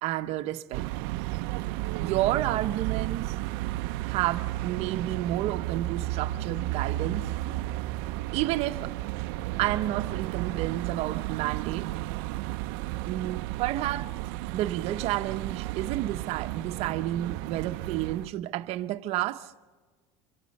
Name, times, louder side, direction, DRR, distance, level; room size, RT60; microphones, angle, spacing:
voice 1, 0.0-0.9 2.0-3.4 4.0-7.3 8.3-9.0 9.6-11.9 13.0-14.1 14.5-19.5, right 14 dB, 55° right, 1.0 m, -30 dB
sound 1, 0.7-18.3, right 17 dB, 75° right, 0.6 m, -33 dB
26.0 x 25.0 x 5.4 m
supercardioid pair, 130°, 13 cm